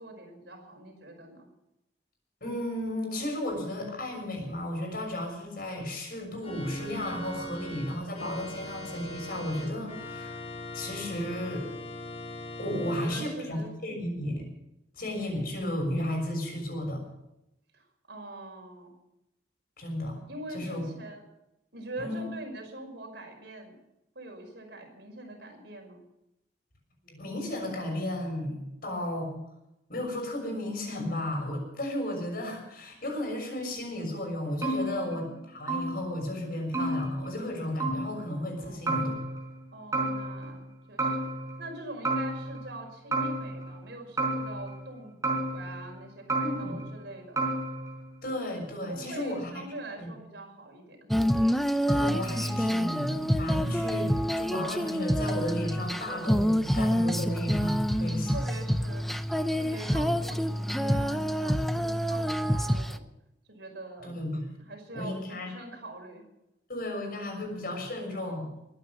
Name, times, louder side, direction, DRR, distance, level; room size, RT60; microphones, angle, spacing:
voice 1, 0.0-1.5 12.8-13.7 17.7-19.0 20.3-21.2 21.7-23.7 24.2-26.0 38.6-39.0 39.7-40.6 40.9-41.3 41.6-47.5 48.8-51.0 52.4-53.1 57.8-59.1 59.5-63.0 63.5-64.1 64.7-66.2 67.2-67.3 67.6-67.9, right 2 dB, 65° right, 2 dB, 5.5 m, -44 dB
voice 2, 2.4-10.4 10.7-11.6 12.6-14.5 15.0-17.0 19.8-20.2 20.5-20.8 22.0-22.3 27.0-29.4 29.9-39.2 46.4-46.7 48.2-49.5 50.0-50.1 51.9-58.4 64.0-64.5 64.9-65.5 66.7-68.5, left 1 dB, 55° left, 3 dB, 6.4 m, -34 dB
Organ, 6.4-13.3, left 1 dB, 35° left, 4.3 m, -40 dB
sound 1, 34.6-35.4 35.7-36.3 36.7-37.6 37.8-38.4 38.9-39.6 39.9-40.7 41.0-41.8 42.1-42.8 43.1-43.9 44.2-44.9 45.2-46.0 46.3-47.0 47.4-48.1, right 2 dB, 15° right, 4.7 m, -32 dB
Female singing, 51.1-63.0, equal, ahead, 0.7 m, -27 dB
22.5 x 9.6 x 6.3 m, 0.86 s
head